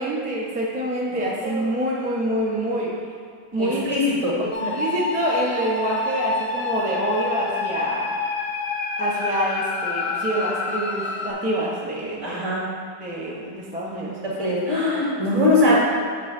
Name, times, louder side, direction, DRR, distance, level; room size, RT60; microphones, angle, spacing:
voice 1, 0.0-3.0 3.5-3.9 4.4-8.1 9.0-12.4 13.0-14.2, right 1 dB, 10° right, -5 dB, 0.4 m, -26 dB
voice 2, 1.1-1.6 3.6-4.8 12.2-12.7 14.2-15.8, left 2 dB, 45° right, -7 dB, 2.2 m, -22 dB
sound 1, 4.5-11.3, left 4 dB, 80° left, 0.5 m, -27 dB
7.8 x 3.1 x 5.9 m, 2.2 s
omnidirectional pair, 1.9 m